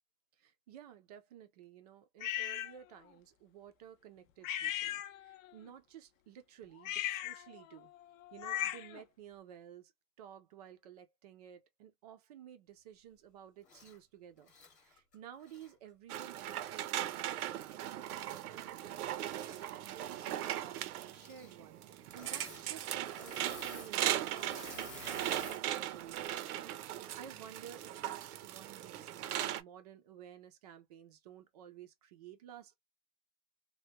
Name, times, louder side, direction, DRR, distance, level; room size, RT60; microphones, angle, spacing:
voice 1, 0.4-7.9 8.3-9.9 10.2-14.5 14.8-32.7, right 9 dB, 30° right, 0.4 m, -54 dB
sound 1, 2.2-2.7 4.4-5.5 6.8-9.0, left 12 dB, 65° left, 0.5 m, -38 dB
Engine / Mechanisms, 13.6-14.0 14.4-15.7 16.5-16.6 19.3-19.9 20.1-20.5 21.1-21.5 22.1-22.7 22.9-25.6 26.1-26.4, left 4 dB, 15° left, 1.0 m, -52 dB
sound 2, 16.1-29.6, right 12 dB, 85° right, 0.7 m, -39 dB
3.3 x 2.2 x 2.7 m
supercardioid pair, 160°, 43 cm